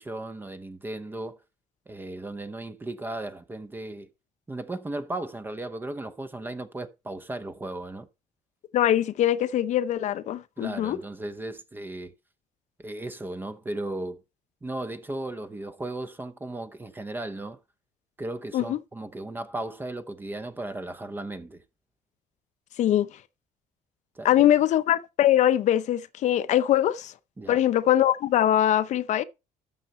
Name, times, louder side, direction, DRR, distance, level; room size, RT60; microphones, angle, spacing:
voice 1, 0.0-1.4 1.9-4.1 4.5-8.1 10.6-12.1 12.8-14.2 14.6-17.6 18.2-21.6 24.1-24.3 27.4-27.6, right 2 dB, 15° right, 0.8 m, -36 dB
voice 2, 8.7-11.0 18.5-18.8 22.8-23.1 24.2-27.1 27.5-29.2, left 12 dB, 55° left, 0.7 m, -22 dB
12.5 x 6.7 x 4.3 m
cardioid pair, 145°, 14 cm